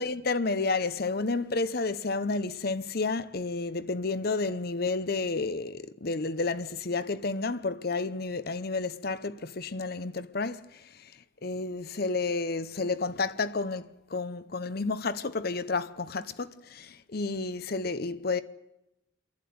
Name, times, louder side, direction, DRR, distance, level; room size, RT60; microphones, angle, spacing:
voice 1, 0.0-11.1 11.4-18.4, left 3 dB, 50° left, 0.8 m, -31 dB
28.0 x 11.5 x 9.5 m
head